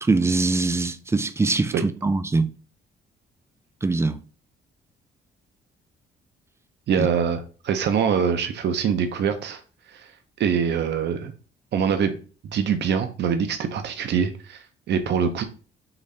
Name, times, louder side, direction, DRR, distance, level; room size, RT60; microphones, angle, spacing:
voice 1, 0.0-2.5 3.8-4.2 7.0-7.1, right 3 dB, 15° right, 0.3 m, -23 dB
voice 2, 6.9-9.6 9.9-10.1 10.4-11.3 11.7-12.2 12.5-15.4, right 7 dB, 60° right, 0.6 m, -24 dB
3.9 x 2.6 x 3.3 m
cardioid pair, 90°, 20 cm